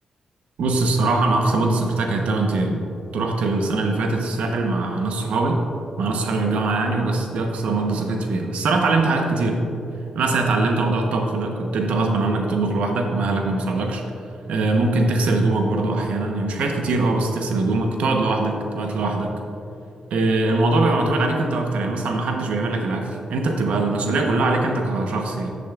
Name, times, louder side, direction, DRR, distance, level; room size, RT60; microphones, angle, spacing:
voice 1, 0.6-2.8 3.1-5.7 6.0-9.7 10.1-14.0 14.5-19.3 20.1-25.5, right 2 dB, 85° right, 2 dB, 0.9 m, -22 dB
10.5 x 8.6 x 2.4 m, 2.6 s
cardioid pair, 65°, 2 cm